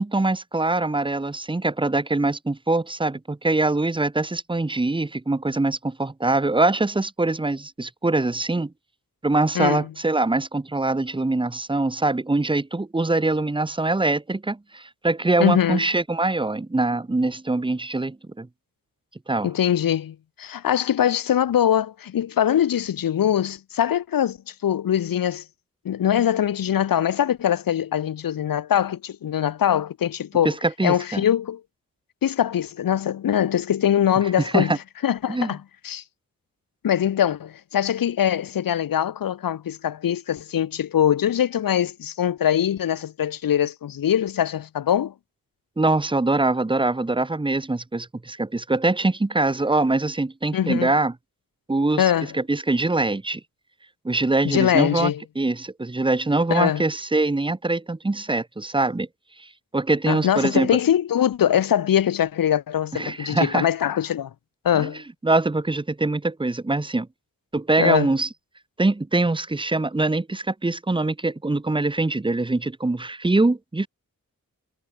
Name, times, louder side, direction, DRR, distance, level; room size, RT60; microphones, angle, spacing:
voice 1, 0.0-8.7 9.2-18.5 19.3-19.5 30.4-31.2 34.4-34.8 35.3-35.5 45.8-51.1 51.7-53.4 54.0-59.1 59.4-59.5 59.7-60.7 62.9-63.6 64.7-64.9 65.2-67.1 67.5-68.3 68.8-73.9, right 2 dB, 15° right, 1.0 m, -23 dB
voice 2, 9.5-9.9 15.4-15.9 19.4-25.4 25.8-30.5 30.8-31.6 32.2-34.7 35.0-36.0 36.8-45.1 50.5-50.9 52.0-52.3 54.4-55.2 56.5-56.9 60.1-64.3 64.6-65.0 67.8-68.1, left 10 dB, 90° left, 0.9 m, -22 dB
wide cardioid pair, 115°, 33 cm